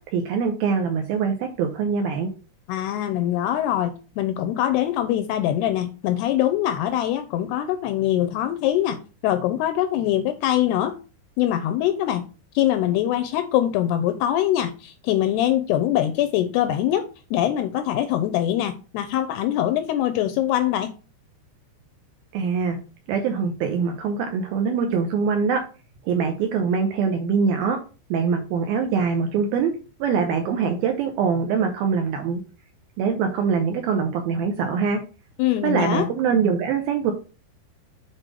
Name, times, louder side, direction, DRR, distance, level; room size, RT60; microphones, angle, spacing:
voice 1, 0.1-2.3 22.3-22.8 23.1-25.6 26.1-27.8 28.1-29.7 30.0-32.4 33.0-35.0 35.6-37.1, right 6 dB, 75° right, 2.3 m, -23 dB
voice 2, 2.7-11.0 11.4-12.3 12.6-20.9 35.4-36.1, left 12 dB, 85° left, 2.4 m, -23 dB
7.6 x 4.3 x 5.0 m
omnidirectional pair, 5.2 m